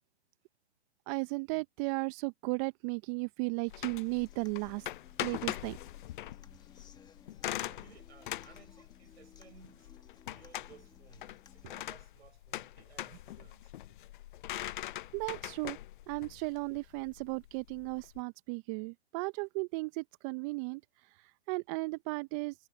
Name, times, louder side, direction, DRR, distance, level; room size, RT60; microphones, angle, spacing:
voice 1, 1.1-4.9 5.2-5.8 15.1-15.8 16.1-20.8 21.2-22.5, right 28 dB, 30° right, 0.9 m, -35 dB
sound 1, 3.7-18.2, left 14 dB, 50° left, 0.8 m, -42 dB
Human voice / Acoustic guitar, 4.0-12.0, left 7 dB, 10° left, 1.6 m, -61 dB
voice 2, 7.6-9.9 10.2-13.7, right 7 dB, 75° right, 5.0 m, -59 dB
hypercardioid pair, 120°, 32 cm